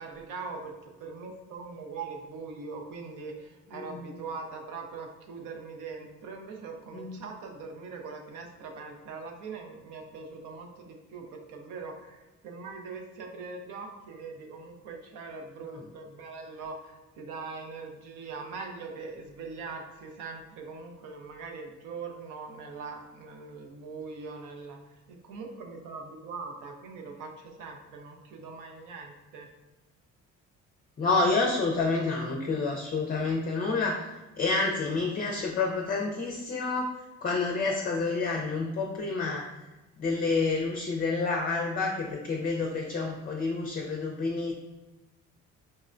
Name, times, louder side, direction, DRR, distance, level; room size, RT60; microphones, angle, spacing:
voice 1, 0.0-24.8 25.1-29.5, right 4 dB, 90° right, 2 dB, 0.6 m, -41 dB
voice 2, 3.7-4.1 6.9-7.2 15.7-15.8 31.0-34.1 34.4-36.9 37.2-39.5 40.0-44.5, left 3 dB, 30° left, 1 dB, 0.4 m, -29 dB
4.2 x 2.1 x 2.4 m, 1.1 s
cardioid pair, 90°, 30 cm